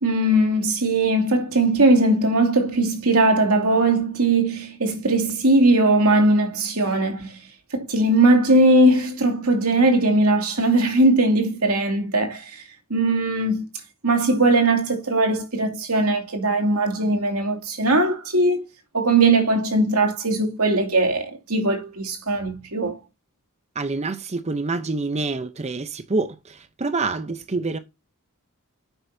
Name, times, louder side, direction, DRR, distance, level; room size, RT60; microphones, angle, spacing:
voice 1, 0.0-7.4 7.7-12.6 12.9-13.7 14.0-18.6 18.9-23.0, right 2 dB, 75° right, 2.6 m, -19 dB
voice 2, 23.7-27.8, right 3 dB, 30° right, 0.7 m, -27 dB
10.5 x 8.0 x 2.7 m
head